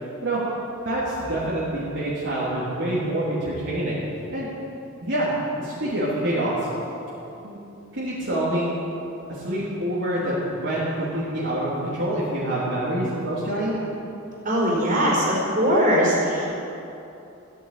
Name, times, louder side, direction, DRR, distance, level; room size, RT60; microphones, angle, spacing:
voice 1, 0.8-4.1 4.3-4.5 5.0-5.3 5.6-6.6 7.4-7.6 7.9-8.7 9.4-13.8, right 1 dB, 60° right, -8 dB, 3.4 m, -26 dB
voice 2, 14.4-16.5, equal, 40° right, -4 dB, 4.5 m, -21 dB
15.0 x 9.3 x 9.2 m, 2.9 s
head